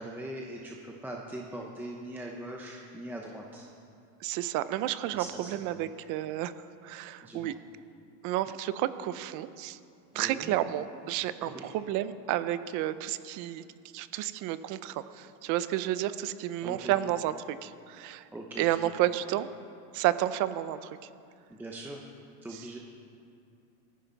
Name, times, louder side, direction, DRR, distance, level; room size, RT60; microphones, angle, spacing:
voice 1, 0.0-3.7 5.1-5.9 7.2-7.5 10.1-10.5 11.4-11.7 16.6-17.0 18.3-18.7 21.5-22.0 22.4-22.8, right 1 dB, 5° right, -1 dB, 0.8 m, -41 dB
voice 2, 4.2-6.5 6.8-7.5 8.2-9.8 10.1-13.6 13.9-18.3 18.6-19.5 19.9-21.0 22.5-22.6, right 13 dB, 40° right, 14 dB, 0.6 m, -31 dB
18.0 x 14.0 x 4.0 m, 2.4 s
supercardioid pair, 140°, 49 cm